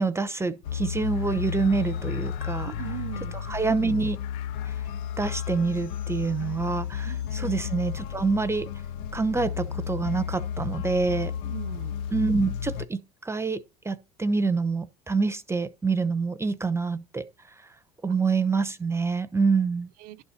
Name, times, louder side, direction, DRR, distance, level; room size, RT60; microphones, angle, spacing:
voice 1, 0.0-2.7 3.3-4.2 4.6-4.7 5.2-8.7 9.1-11.3 12.1-17.2 17.6-17.7 18.0-19.9, right 4 dB, 15° right, 0.8 m, -26 dB
sound 1, 0.6-12.8, left 8 dB, 80° left, 0.7 m, -33 dB
voice 2, 2.6-3.3 7.0-7.6 11.4-12.0 20.0-20.2, right 13 dB, 70° right, 0.8 m, -39 dB
11.5 x 4.2 x 5.6 m
supercardioid pair, 85°, 16 cm